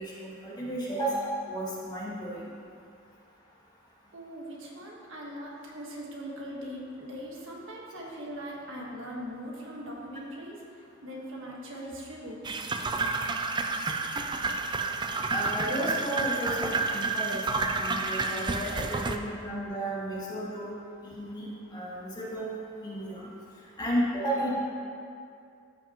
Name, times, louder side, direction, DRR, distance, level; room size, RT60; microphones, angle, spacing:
voice 1, 0.0-2.4 15.3-17.4 17.7-20.7 21.0-22.5 22.8-23.3 23.8-24.5, right 1 dB, 20° left, -7 dB, 1.9 m, -33 dB
voice 2, 4.1-10.6 11.0-12.6, equal, 70° right, -3 dB, 1.5 m, -40 dB
sound 1, 12.4-19.2, right 3 dB, 25° right, 0.4 m, -30 dB
14.0 x 5.7 x 3.0 m, 2.4 s
head